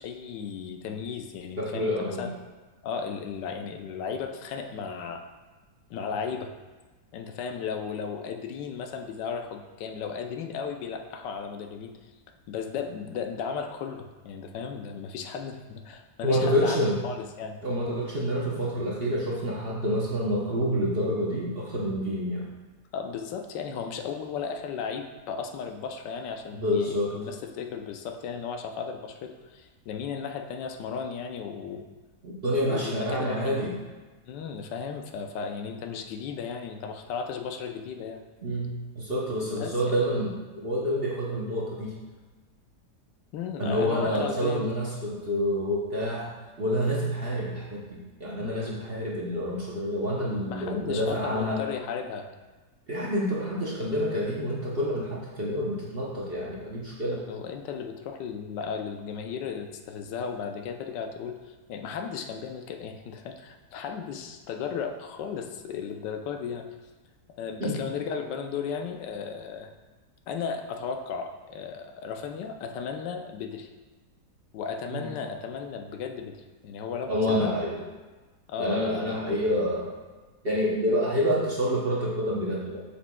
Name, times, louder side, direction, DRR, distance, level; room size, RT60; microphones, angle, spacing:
voice 1, 0.0-2.3 2.8-5.2 5.9-6.5 7.1-11.9 12.5-16.8 17.0-17.6 22.9-31.8 32.6-33.6 34.3-38.2 39.5-39.8 43.3-44.7 50.5-52.3 57.1-66.6 67.4-69.7 70.3-73.7 74.5-76.4 76.6-77.5 78.5-79.2, left 6 dB, 80° left, 4 dB, 1.3 m, -35 dB
voice 2, 1.6-2.3 16.2-17.0 17.6-22.5 26.5-27.1 32.2-33.7 38.4-42.0 43.6-46.3 46.6-51.6 52.9-57.2 67.6-67.8 74.9-75.1 77.1-77.8 78.6-79.9 80.4-82.8, equal, 45° right, -5 dB, 0.8 m, -28 dB
7.2 x 6.8 x 2.3 m, 1.3 s
omnidirectional pair, 1.9 m